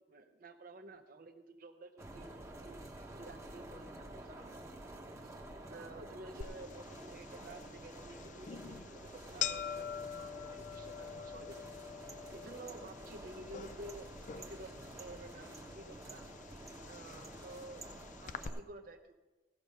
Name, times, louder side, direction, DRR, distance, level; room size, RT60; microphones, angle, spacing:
voice 1, 0.0-2.8 3.1-4.5 5.2-5.4 5.7-11.9 12.3-14.1 14.4-16.3 16.8-17.9 18.2-19.1, right 2 dB, 50° right, 5 dB, 0.8 m, -52 dB
sound 1, 2.0-18.6, right 1 dB, 15° right, 1.1 m, -50 dB
sound 2, 6.4-18.5, left 8 dB, 45° left, 0.4 m, -46 dB
16.0 x 6.2 x 5.3 m, 1.2 s
head